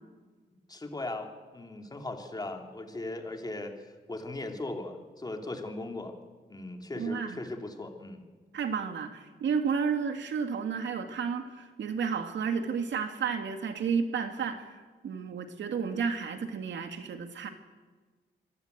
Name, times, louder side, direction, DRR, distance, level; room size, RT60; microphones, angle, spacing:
voice 1, 0.7-6.1 6.5-8.2, left 2 dB, 20° left, 4 dB, 2.9 m, -38 dB
voice 2, 7.0-7.4 8.5-17.5, right 6 dB, 80° right, 7 dB, 2.1 m, -32 dB
25.5 x 19.0 x 8.1 m, 1.4 s
wide cardioid pair, 120°, 19 cm